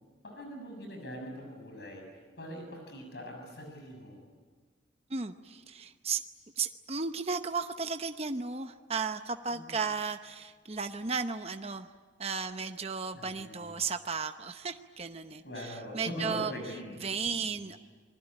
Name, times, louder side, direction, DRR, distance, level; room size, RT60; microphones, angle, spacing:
voice 1, 0.2-2.1 2.4-4.2 9.5-9.7 13.1-13.7 15.4-17.6, equal, 60° left, 2 dB, 6.9 m, -42 dB
voice 2, 5.1-6.2 6.6-11.9 12.2-16.5 17.0-17.8, right 5 dB, 35° right, 8 dB, 0.8 m, -35 dB
27.5 x 21.0 x 10.0 m, 1.5 s
head